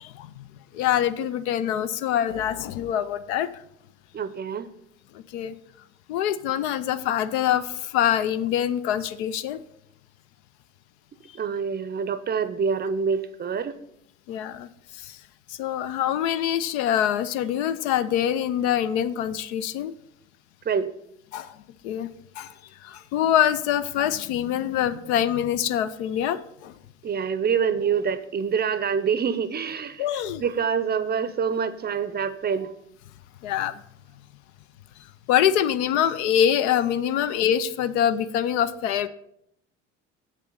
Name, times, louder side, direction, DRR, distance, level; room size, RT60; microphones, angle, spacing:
voice 1, 0.0-0.3 0.7-3.5 5.3-5.5 6.1-9.6 14.3-15.2 15.5-19.9 21.3-21.5 21.8-22.1 22.4-22.5 22.8-26.7 30.0-30.4 33.4-33.7 35.3-39.1, left 10 dB, 65° left, 13 dB, 0.6 m, -25 dB
voice 2, 4.1-4.7 11.3-13.8 20.6-20.9 27.0-32.7, right 6 dB, 25° right, 14 dB, 0.6 m, -26 dB
7.4 x 6.6 x 5.1 m, 0.75 s
figure-of-eight pair, 60°, 36 cm